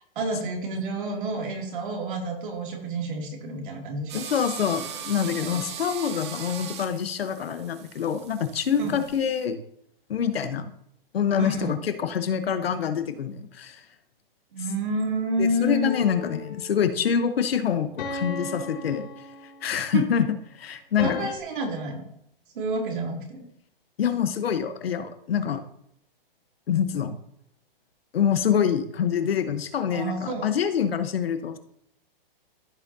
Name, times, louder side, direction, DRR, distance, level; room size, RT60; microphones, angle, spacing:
voice 1, 0.2-4.2 5.3-5.6 8.8-9.0 11.4-11.8 14.5-16.0 19.7-20.1 21.0-22.0 22.5-23.5 29.9-30.5, right 1 dB, 60° right, 1 dB, 2.7 m, -29 dB
voice 2, 4.1-9.6 10.1-10.7 11.1-13.8 15.4-19.1 19.6-20.3 20.6-21.3 24.0-25.6 26.7-27.1 28.1-31.6, left 8 dB, 85° left, 9 dB, 1.1 m, -26 dB
sound 1, 4.1-9.5, right 8 dB, 30° right, 0.7 m, -39 dB
sound 2, 15.8-16.9 18.0-19.9 21.0-21.4, left 3 dB, 55° left, 3.0 m, -36 dB
14.5 x 6.1 x 2.8 m, 0.72 s
hypercardioid pair, 170°, 29 cm